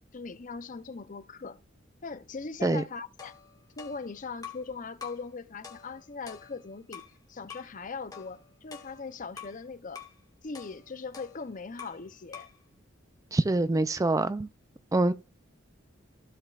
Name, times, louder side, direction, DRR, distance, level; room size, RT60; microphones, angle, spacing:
voice 1, 0.1-1.6 2.0-3.3 3.8-7.0 7.3-10.0 10.4-12.5, left 4 dB, 40° left, 0.6 m, -40 dB
sound 1, 3.2-4.7 5.0-5.3 5.6-7.2 7.5-7.7 8.1-9.6 10.0-10.2 10.5-12.1 12.3-12.6, left 7 dB, 20° left, 1.7 m, -47 dB
voice 2, 13.3-14.5 14.9-15.1, right 2 dB, 15° right, 0.3 m, -25 dB
15.5 x 5.4 x 2.4 m
head